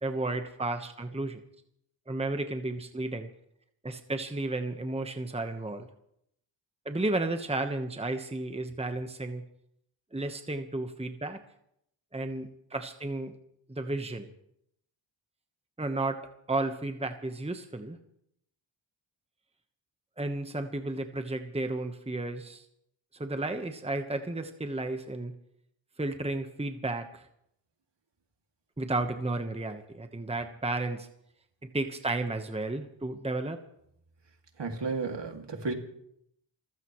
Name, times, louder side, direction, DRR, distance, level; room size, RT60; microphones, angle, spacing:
voice 1, 0.0-1.4 2.1-3.3 3.8-5.9 6.8-9.4 10.1-11.4 12.1-13.3 13.7-14.3 15.8-16.2 16.5-18.0 20.2-22.6 23.1-25.3 26.0-27.3 28.8-31.1 31.6-33.6, right 2 dB, 15° right, 6 dB, 1.2 m, -33 dB
voice 2, 34.6-35.7, right 4 dB, 60° right, 3 dB, 2.5 m, -33 dB
28.5 x 15.0 x 3.2 m, 0.74 s
wide cardioid pair, 70°, 48 cm